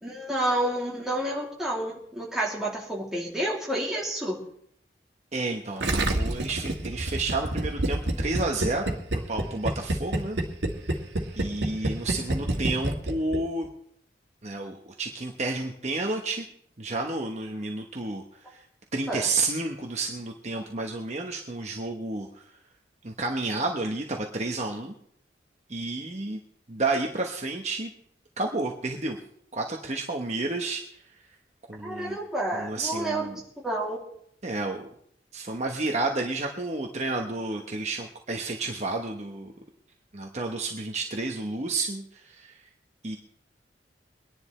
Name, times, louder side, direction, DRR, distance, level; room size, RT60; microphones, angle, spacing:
voice 1, 0.0-4.4 19.1-19.3 31.8-33.2 33.6-34.0, right 1 dB, 5° right, -5 dB, 2.9 m, -29 dB
voice 2, 5.3-8.9 9.3-10.4 10.9-11.0 11.3-13.7 14.4-16.4 16.8-18.6 18.9-22.4 23.0-24.9 25.7-26.4 26.7-27.9 28.4-29.2 29.5-30.8 31.7-32.2 32.5-33.4 34.4-34.9 35.3-39.5 40.1-42.6 43.0-43.2, right 2 dB, 40° right, 2 dB, 1.0 m, -31 dB
Gurgling, 5.8-13.4 13.6-13.7, right 1 dB, 75° right, 1.7 m, -27 dB
24.0 x 10.5 x 3.3 m, 0.68 s
head